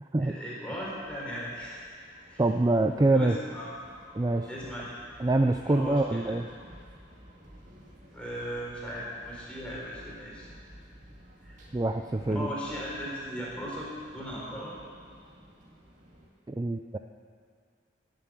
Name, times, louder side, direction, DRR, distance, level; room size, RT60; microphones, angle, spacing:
voice 1, 0.2-1.8 2.3-2.4 3.1-3.7 4.5-5.0 5.6-6.4 8.1-10.5 11.4-11.6 12.2-14.7, equal, 5° left, -6 dB, 3.8 m, -38 dB
sound 1, 0.7-16.3, equal, 40° right, 2.2 m, -52 dB
voice 2, 2.4-3.4 4.1-4.5 5.2-6.5 11.7-12.5 16.5-17.0, right 2 dB, 20° right, 6 dB, 0.4 m, -25 dB
17.5 x 7.4 x 7.6 m, 2.2 s
head